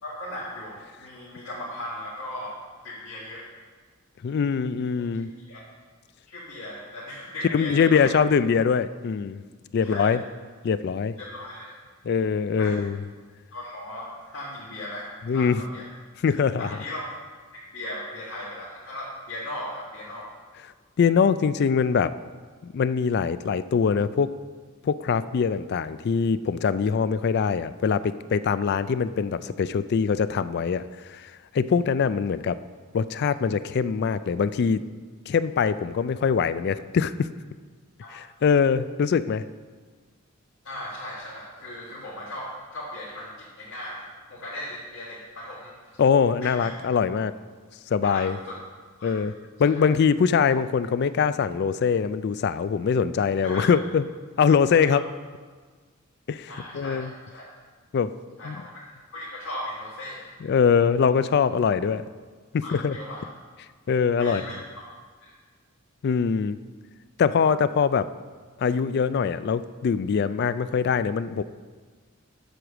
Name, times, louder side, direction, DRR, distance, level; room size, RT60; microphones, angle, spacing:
voice 1, 0.0-2.5 2.8-3.4 5.5-5.6 6.3-8.1 9.8-10.1 11.2-11.7 12.6-12.9 13.5-15.9 16.6-17.1 17.5-20.3 38.0-38.1 40.6-45.8 46.4-46.7 48.0-48.6 49.0-49.2 49.8-49.9 53.4-53.7 56.5-57.5 58.4-58.8 59.1-60.3 62.6-63.2 64.2-64.9 65.2-65.3, left 1 dB, 70° left, -7 dB, 1.7 m, -37 dB
voice 2, 4.2-5.3 7.5-9.4 9.7-10.2 10.6-11.1 12.0-13.0 15.3-15.6 16.2-16.7 21.0-22.1 22.7-24.3 24.8-30.8 31.1-32.6 32.9-34.8 35.3-37.3 38.1-39.4 46.0-47.3 47.9-48.4 49.0-49.3 49.6-54.0 54.4-55.0 56.3-57.1 57.9-58.1 58.4-58.6 60.4-62.0 62.5-63.0 63.9-64.4 66.0-66.6 67.2-68.1 68.6-71.4, left 6 dB, 50° left, 14 dB, 0.3 m, -23 dB
7.8 x 6.5 x 6.1 m, 1.5 s
head